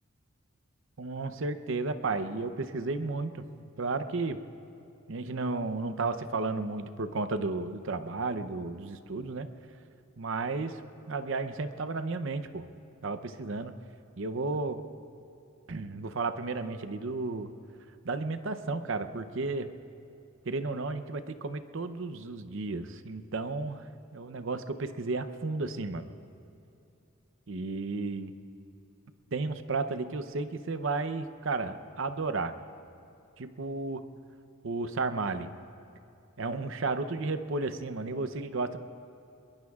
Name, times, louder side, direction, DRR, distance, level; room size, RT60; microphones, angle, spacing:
voice 1, 1.0-3.4 3.8-4.4 5.1-9.5 10.2-10.8 11.1-12.7 13.0-13.7 14.2-14.8 15.7-17.5 18.0-19.7 20.5-23.8 24.1-26.1 27.5-28.3 29.3-32.5 33.4-34.0 34.6-35.5 36.4-38.8, right 3 dB, 65° right, 11 dB, 0.7 m, -33 dB
22.5 x 22.0 x 2.4 m, 2.7 s
head